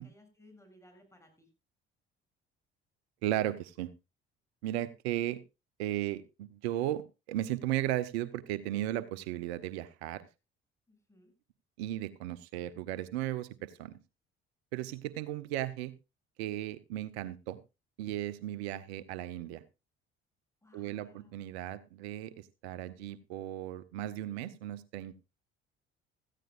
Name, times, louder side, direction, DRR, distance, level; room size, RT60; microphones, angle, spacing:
voice 1, 0.0-1.5 10.9-11.3 20.6-21.5, left 1 dB, 10° left, 3 dB, 7.3 m, -61 dB
voice 2, 3.2-3.9 4.6-5.4 5.8-10.2 11.8-13.9 14.7-15.9 16.4-17.6 18.0-19.6 20.7-25.2, right 13 dB, 75° right, 17 dB, 0.7 m, -35 dB
16.5 x 14.0 x 2.4 m, 0.27 s
hypercardioid pair, 55°, 32 cm